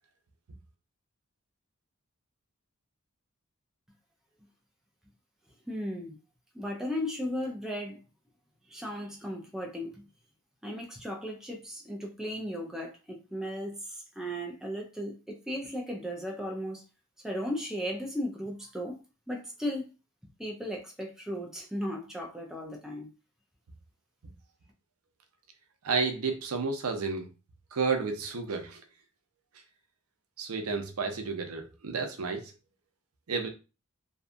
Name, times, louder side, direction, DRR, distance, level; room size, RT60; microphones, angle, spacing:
voice 1, 5.7-6.2 6.5-8.0 8.7-10.0 10.6-16.8 17.2-19.0 19.3-19.9 20.4-23.1, equal, 5° right, 0.5 m, -36 dB
voice 2, 25.8-27.3 27.7-28.8 30.4-32.5 33.3-33.5, right 4 dB, 90° right, 0.6 m, -31 dB
2.7 x 2.3 x 2.5 m
head